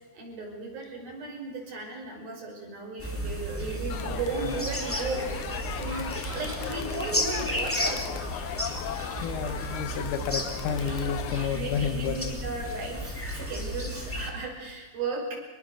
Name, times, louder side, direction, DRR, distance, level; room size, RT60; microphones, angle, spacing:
voice 1, 0.1-8.3 11.5-15.4, right 3 dB, 65° right, -1 dB, 7.5 m, -35 dB
sound 1, 3.0-14.3, equal, 5° left, 2.6 m, -33 dB
Crowd, 3.9-11.5, left 11 dB, 80° left, 1.7 m, -38 dB
voice 2, 9.2-12.3, left 7 dB, 60° left, 8 dB, 3.0 m, -31 dB
25.5 x 21.5 x 6.6 m, 1.4 s
omnidirectional pair, 4.6 m